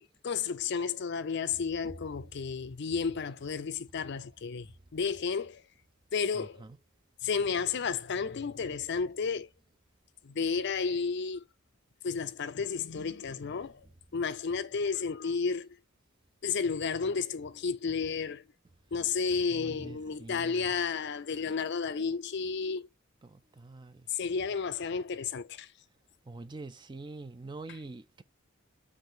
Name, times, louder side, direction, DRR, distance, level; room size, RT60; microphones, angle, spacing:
voice 1, 0.0-4.7 4.9-5.6 6.1-6.6 7.2-9.5 10.2-11.4 12.0-13.9 14.1-15.7 16.4-18.4 18.9-22.9 24.1-25.7 27.7-27.8, left 5 dB, 55° left, 0.5 m, -32 dB
voice 2, 6.3-6.7 19.5-20.6 23.2-24.0 26.3-28.2, right 3 dB, 20° right, 0.3 m, -45 dB
5.4 x 2.6 x 3.7 m
head